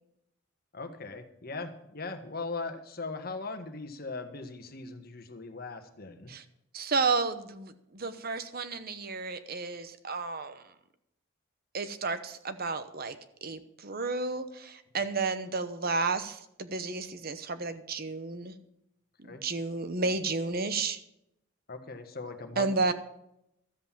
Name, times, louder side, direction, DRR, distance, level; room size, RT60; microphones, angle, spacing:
voice 1, 0.7-6.3 19.2-19.4 21.7-22.7, left 3 dB, 45° left, 7 dB, 1.4 m, -39 dB
voice 2, 6.7-10.6 11.7-13.2 13.4-18.5 19.2-21.0 22.6-22.9, right 4 dB, 45° right, 11 dB, 1.0 m, -32 dB
13.0 x 8.0 x 7.3 m, 0.79 s
head